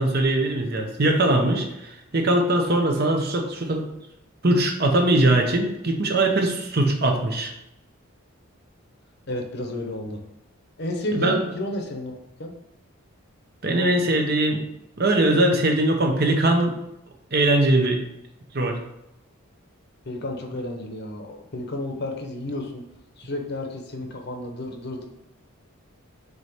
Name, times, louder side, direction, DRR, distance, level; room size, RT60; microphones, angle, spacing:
voice 1, 0.0-3.9 4.4-7.5 11.1-11.4 13.6-14.6 15.0-16.8 17.3-18.0 18.5-18.8, right 1 dB, 45° right, 3 dB, 0.8 m, -21 dB
voice 2, 9.3-10.2 10.8-12.5 20.1-22.8 23.2-25.1, left 1 dB, 50° left, 3 dB, 0.8 m, -32 dB
4.8 x 4.1 x 5.0 m, 0.85 s
head